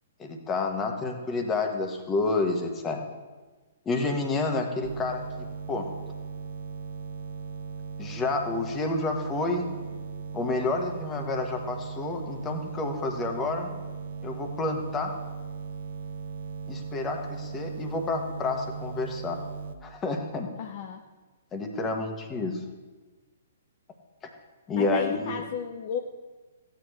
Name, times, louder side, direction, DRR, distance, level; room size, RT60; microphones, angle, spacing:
voice 1, 0.2-3.0 3.8-5.2 5.7-5.9 8.0-9.7 10.3-13.7 14.2-15.1 16.7-19.4 19.8-20.5 21.5-22.6 24.2-24.3 24.7-25.4, left 3 dB, 20° left, 4 dB, 1.4 m, -29 dB
sound 1, 4.8-19.8, right 5 dB, 55° right, 0.6 m, -38 dB
voice 2, 20.6-21.0 24.8-26.0, left 7 dB, 45° left, 5 dB, 0.6 m, -33 dB
15.5 x 9.3 x 3.2 m, 1.3 s
figure-of-eight pair, 120°, 0 cm